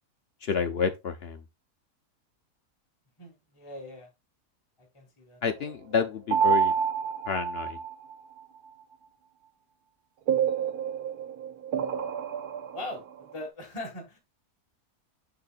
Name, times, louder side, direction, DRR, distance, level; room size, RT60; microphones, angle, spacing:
voice 1, 0.4-1.4 5.4-6.7 7.3-7.8, left 6 dB, 65° left, 0.6 m, -29 dB
voice 2, 3.2-4.1 4.9-5.4 12.7-14.2, left 1 dB, 20° left, 1.6 m, -40 dB
sound 1, 6.3-8.1 10.3-13.0, right 7 dB, 75° right, 1.3 m, -28 dB
6.7 x 6.7 x 2.3 m
omnidirectional pair, 1.7 m